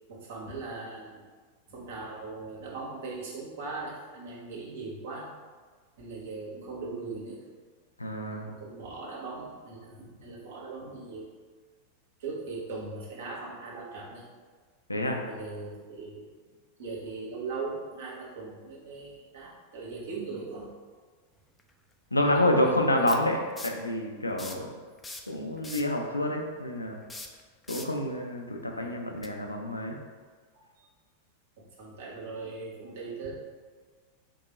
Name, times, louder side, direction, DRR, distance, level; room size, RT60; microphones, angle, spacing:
voice 1, 0.1-1.3 1.7-5.3 6.0-7.4 8.2-11.3 12.2-14.2 15.0-16.3 16.8-20.8 22.3-23.2 24.5-24.7 28.8-29.0 30.8-30.9 31.8-33.3, right 3 dB, 55° right, -4 dB, 1.2 m, -39 dB
voice 2, 8.0-8.5 14.9-15.2 22.1-23.4 23.6-24.7 25.3-27.0 27.7-30.0, left 1 dB, 85° left, 2 dB, 0.5 m, -28 dB
sound 1, 21.6-21.7 23.1-23.9 24.3-24.7 25.0-26.0 27.0-28.0 29.2-29.3, left 2 dB, 10° left, 0.4 m, -41 dB
3.6 x 3.1 x 4.0 m, 1.5 s
figure-of-eight pair, 90°, 0 cm